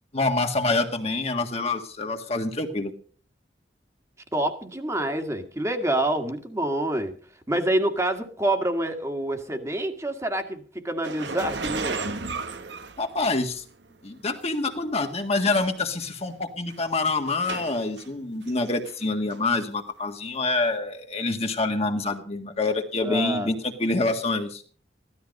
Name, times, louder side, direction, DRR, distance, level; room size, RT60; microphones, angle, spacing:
voice 1, 0.1-2.9 13.0-13.6 14.0-24.6, left 3 dB, 35° left, 5 dB, 1.7 m, -26 dB
voice 2, 4.3-7.1 7.5-12.1 23.0-23.5, right 1 dB, 15° right, 6 dB, 1.8 m, -27 dB
sound 1, 11.0-13.6 14.5-14.6 15.4-15.5 15.8-16.1 16.7-18.1 18.5-19.0 19.3-19.4 20.6-20.7, right 4 dB, 85° right, 1.4 m, -34 dB
15.5 x 13.0 x 5.3 m, 0.42 s
head